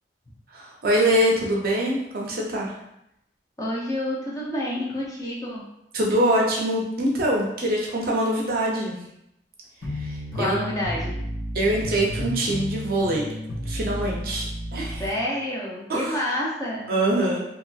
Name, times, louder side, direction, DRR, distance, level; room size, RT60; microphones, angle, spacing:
voice 1, 0.5-2.8 5.9-9.0 9.9-10.6 11.5-13.3 13.6-15.0 15.9-16.2 16.9-17.4, right 1 dB, 50° right, -2 dB, 0.6 m, -24 dB
voice 2, 3.6-5.6 10.3-11.1 15.0-16.9, left 1 dB, 15° left, -5 dB, 0.5 m, -28 dB
sound 1, 9.8-15.1, equal, 75° left, 1.5 m, -32 dB
3.0 x 2.7 x 2.3 m, 0.81 s
head